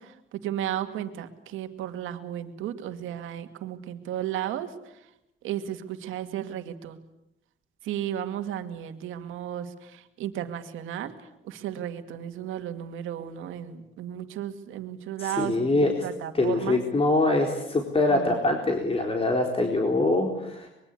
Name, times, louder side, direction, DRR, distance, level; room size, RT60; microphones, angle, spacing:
voice 1, 0.0-5.1 5.4-7.0 7.8-16.8 18.1-18.4, right 11 dB, 90° right, 8 dB, 2.3 m, -34 dB
voice 2, 15.2-15.9 16.4-20.7, left 2 dB, 30° left, 2 dB, 4.1 m, -24 dB
24.5 x 22.5 x 8.5 m, 0.84 s
cardioid pair, 90°, 20 cm